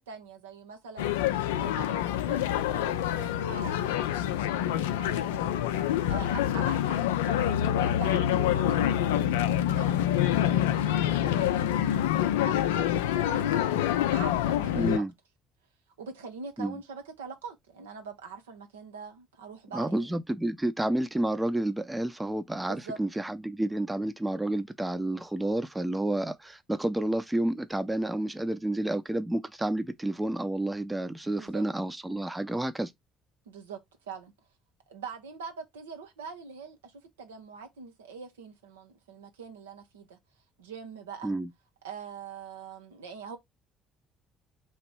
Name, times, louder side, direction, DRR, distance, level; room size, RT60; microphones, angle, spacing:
voice 1, 0.0-5.6 6.1-12.0 12.4-13.7 14.1-15.0 16.0-20.1 22.7-23.0 31.2-31.6 33.5-33.8 34.1-34.3 34.9-40.2 40.6-41.3 41.8-43.4, right 5 dB, 80° right, 0.8 m, -43 dB
sound 1, 1.0-15.0, left 11 dB, 75° left, 0.3 m, -26 dB
voice 2, 14.7-15.1 16.6-16.8 19.7-32.9 41.2-41.5, right 1 dB, 10° right, 0.6 m, -30 dB
3.1 x 2.9 x 4.6 m
hypercardioid pair, 55°, 0 cm